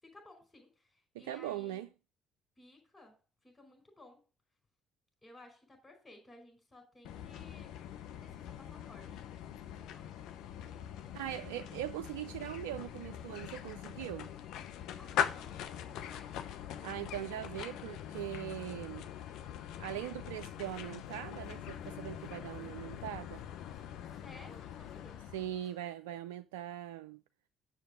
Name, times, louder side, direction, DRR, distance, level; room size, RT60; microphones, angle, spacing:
voice 1, 0.0-1.8 2.6-4.2 5.2-7.8 8.2-10.3 15.0-16.4 24.1-25.3, left 1 dB, 20° left, 4.6 m, -57 dB
voice 2, 1.1-1.9 11.1-14.3 16.8-19.1 19.8-23.4 25.3-27.2, right 13 dB, 85° right, 0.3 m, -41 dB
sound 1, 7.0-25.7, left 9 dB, 75° left, 0.7 m, -42 dB
sound 2, 20.6-25.9, left 2 dB, 40° left, 5.5 m, -65 dB
7.3 x 6.6 x 4.9 m
hypercardioid pair, 55°, 0 cm